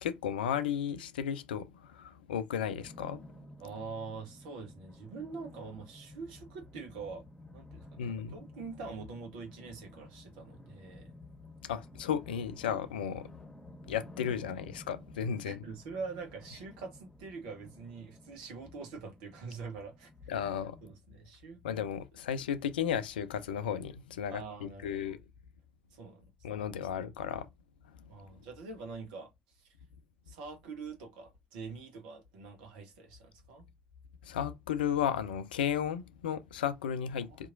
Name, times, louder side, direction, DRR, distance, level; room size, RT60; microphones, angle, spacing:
voice 1, 0.0-3.2 8.0-8.4 11.6-13.3 13.9-15.6 20.3-20.8 21.6-25.2 26.4-27.5 34.2-37.5, left 8 dB, 80° left, 0.4 m, -34 dB
sound 1, 2.8-20.9, left 1 dB, 10° left, 1.4 m, -54 dB
voice 2, 3.6-7.2 7.5-11.1 15.2-20.1 20.4-20.5 20.8-21.6 24.3-25.2 25.9-26.2 26.5-26.6 28.1-29.3 29.6-29.8 30.3-33.7 37.2-37.5, right 4 dB, 70° right, 0.9 m, -44 dB
4.2 x 2.9 x 2.5 m
figure-of-eight pair, 50°, 5 cm